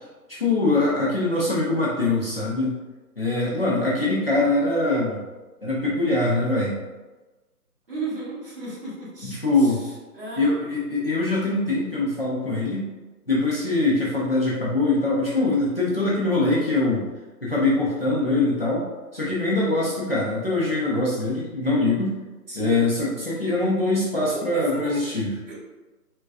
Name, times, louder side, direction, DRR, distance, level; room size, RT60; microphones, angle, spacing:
voice 1, 0.3-2.8 3.2-5.2 5.6-6.8 9.4-9.8 10.4-12.9 13.3-17.1 17.4-18.8 19.1-22.1 22.6-25.3, left 2 dB, 40° left, -8 dB, 0.5 m, -23 dB
voice 2, 7.9-10.5 22.5-22.8 24.3-25.0 25.5-25.6, right 3 dB, 35° right, -9 dB, 1.0 m, -35 dB
3.5 x 2.2 x 2.3 m, 1.2 s
hypercardioid pair, 165°, 48 cm